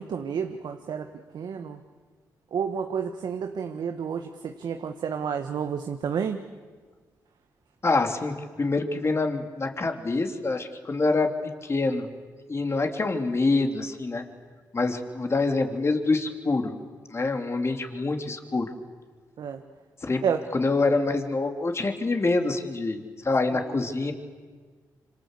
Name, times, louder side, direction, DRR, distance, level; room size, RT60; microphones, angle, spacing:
voice 1, 0.0-1.8 2.5-6.4 19.4-19.6 20.2-20.4 23.7-23.8, right 7 dB, 70° right, 6 dB, 1.5 m, -30 dB
voice 2, 7.8-11.3 11.6-12.1 12.5-14.2 14.7-16.7 17.1-18.7 20.0-20.2 20.5-24.1, left 3 dB, 35° left, 5 dB, 3.4 m, -26 dB
27.0 x 26.0 x 8.3 m, 1.5 s
cardioid pair, 65°, 7 cm